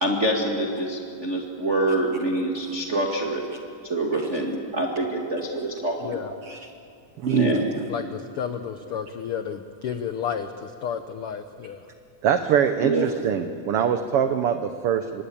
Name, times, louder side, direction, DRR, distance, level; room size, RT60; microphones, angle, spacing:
voice 1, 0.0-3.4 3.8-6.3 7.3-7.7 12.8-13.1, right 1 dB, 30° right, -1 dB, 1.7 m, -25 dB
voice 2, 6.0-6.3 7.9-11.8, left 8 dB, 80° left, 9 dB, 1.2 m, -31 dB
voice 3, 7.2-7.6 12.2-15.2, right 8 dB, 80° right, 8 dB, 1.3 m, -24 dB
25.5 x 22.0 x 8.5 m, 2.5 s
omnidirectional pair, 3.7 m